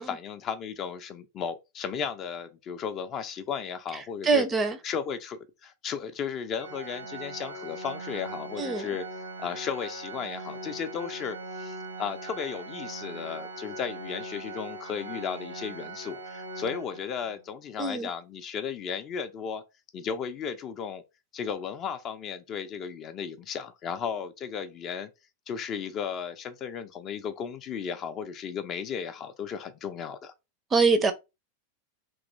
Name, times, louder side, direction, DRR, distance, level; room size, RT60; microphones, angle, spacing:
voice 1, 0.0-4.5 4.8-19.6 19.9-21.0 21.3-25.1 25.5-30.3, left 7 dB, 30° left, 0.4 m, -35 dB
voice 2, 4.2-4.8 8.6-8.9 17.8-18.1 30.7-31.1, right 4 dB, 20° right, 0.5 m, -23 dB
Organ, 6.6-17.4, right 2 dB, 75° right, 0.9 m, -40 dB
3.0 x 2.9 x 2.6 m
figure-of-eight pair, 90°, 0 cm